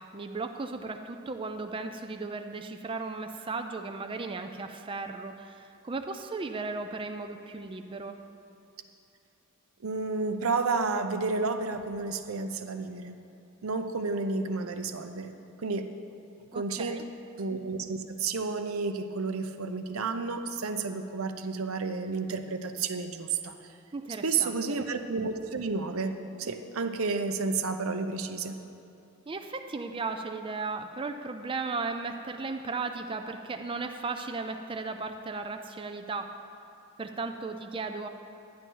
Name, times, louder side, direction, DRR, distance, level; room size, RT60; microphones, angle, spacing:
voice 1, 0.0-8.2 16.5-17.0 23.9-24.8 29.3-36.3 37.0-38.1, right 3 dB, 25° right, 6 dB, 0.4 m, -36 dB
voice 2, 9.8-13.1 13.6-15.3 15.6-15.9 16.5-17.0 17.4-23.5 24.2-28.6, right 4 dB, 80° right, 7 dB, 0.7 m, -31 dB
10.5 x 10.5 x 4.6 m, 2.9 s
head